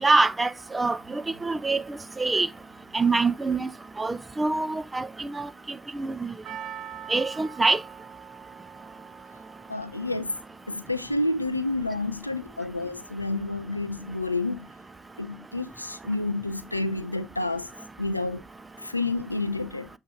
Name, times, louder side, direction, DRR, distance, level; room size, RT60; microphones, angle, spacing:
voice 1, 0.0-2.5 2.9-3.7 4.0-5.5 5.9-6.3 7.1-7.8, right 3 dB, 20° right, 0.6 m, -25 dB
Percussion, 6.4-10.8 11.1-11.2, right 9 dB, 55° right, 0.9 m, -43 dB
voice 2, 9.7-10.4 10.7-14.7 15.2-17.7 18.0-18.4 18.8-19.9, left 2 dB, 90° left, 0.3 m, -29 dB
7.3 x 3.2 x 4.6 m
figure-of-eight pair, 50°, 0 cm